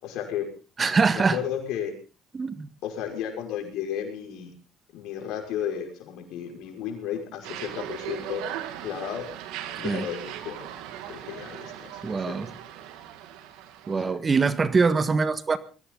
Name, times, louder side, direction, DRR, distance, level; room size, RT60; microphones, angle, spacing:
voice 1, 0.0-0.5 1.2-1.9 2.8-4.5 4.9-8.4 8.8-9.3 9.8-10.6 11.1-12.4 14.1-14.2, left 9 dB, 80° left, 3 dB, 5.7 m, -33 dB
voice 2, 0.8-1.4 2.3-2.7 9.8-10.0 12.0-12.5 13.9-15.6, right 4 dB, 35° right, 13 dB, 1.7 m, -23 dB
sound 1, 7.4-14.0, right 11 dB, 85° right, 2.2 m, -38 dB
22.0 x 16.5 x 3.9 m, 0.36 s
supercardioid pair, 75°, 0 cm